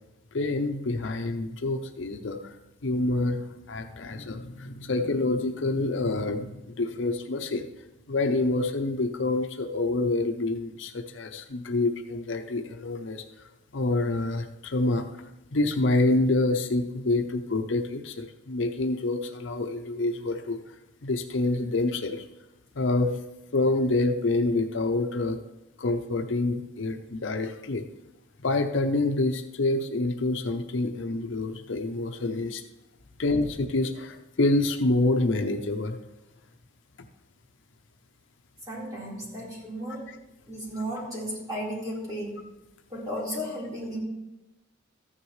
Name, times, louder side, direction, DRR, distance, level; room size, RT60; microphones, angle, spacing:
voice 1, 0.3-2.4 2.8-6.5 6.8-7.6 8.1-13.2 13.7-15.1 15.5-20.6 21.0-22.2 22.8-23.1 23.5-25.4 25.8-27.8 28.4-32.6 33.2-36.0, left 2 dB, 65° left, 5 dB, 0.7 m, -27 dB
voice 2, 38.7-40.1 40.5-42.3 42.9-44.0, equal, 20° right, -6 dB, 4.1 m, -34 dB
14.0 x 10.0 x 3.2 m, 0.97 s
head